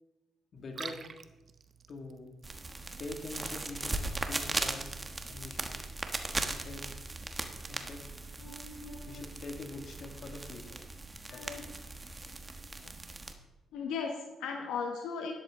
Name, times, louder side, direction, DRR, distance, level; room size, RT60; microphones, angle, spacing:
voice 1, 0.5-1.0 1.9-2.3 3.0-4.0 4.2-4.9 5.3-5.7 6.6-6.8 7.7-8.0 9.0-10.8 11.3-11.6, left 3 dB, 50° left, 3 dB, 2.2 m, -44 dB
Liquid, 0.6-5.6, right 5 dB, 45° right, 0.8 m, -51 dB
sound 1, 2.4-13.3, right 2 dB, 20° right, 1.2 m, -38 dB
voice 2, 8.4-9.3 11.3-11.7 12.8-13.2 13.7-15.3, left 5 dB, 90° left, 3 dB, 1.2 m, -38 dB
12.5 x 10.5 x 3.8 m, 1.0 s
cardioid pair, 90°, 0 cm